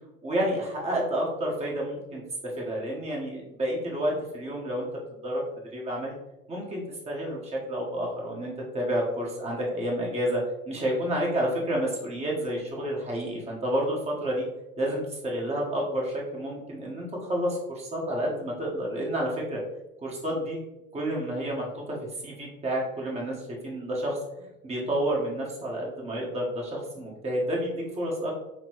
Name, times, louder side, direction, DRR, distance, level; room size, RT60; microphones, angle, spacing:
voice 1, 0.2-2.2 2.6-4.9 5.2-5.4 5.7-6.1 6.5-14.5 14.8-19.6 20.0-20.6 20.9-22.0 22.2-24.2 24.6-28.3, equal, 15° right, -3 dB, 1.1 m, -30 dB
5.7 x 2.1 x 2.9 m, 0.93 s
figure-of-eight pair, 75°, 43 cm